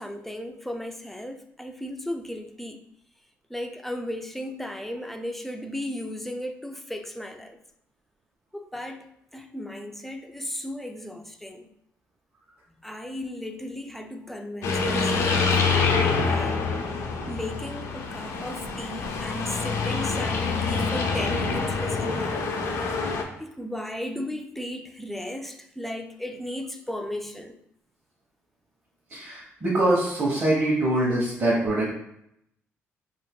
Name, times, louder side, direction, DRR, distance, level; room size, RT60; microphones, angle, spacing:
voice 1, 0.0-2.8 3.5-7.6 8.5-11.7 12.8-15.6 16.1-16.7 17.3-22.5 23.4-27.6, left 1 dB, 5° left, 0.3 m, -35 dB
sound 1, 14.6-23.2, left 4 dB, 80° left, 0.5 m, -26 dB
voice 2, 29.1-31.9, right 1 dB, 45° right, 1.0 m, -23 dB
2.7 x 2.5 x 3.6 m
cardioid pair, 110°, 5 cm